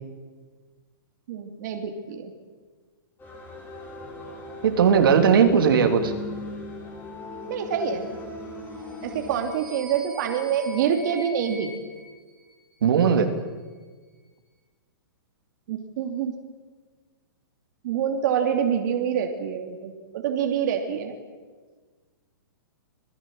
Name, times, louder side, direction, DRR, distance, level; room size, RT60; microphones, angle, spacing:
voice 1, 1.3-2.3 7.5-8.1 9.0-11.7 15.7-16.4 17.8-21.2, right 8 dB, 55° right, 4 dB, 2.9 m, -26 dB
sound 1, 3.2-9.4, left 2 dB, 15° left, 6.8 m, -38 dB
voice 2, 4.6-6.1 12.8-13.3, right 7 dB, 75° right, 5 dB, 3.2 m, -18 dB
sound 2, 8.8-13.1, right 1 dB, ahead, 5.6 m, -45 dB
27.0 x 20.0 x 7.9 m, 1.4 s
hypercardioid pair, 145°, 12 cm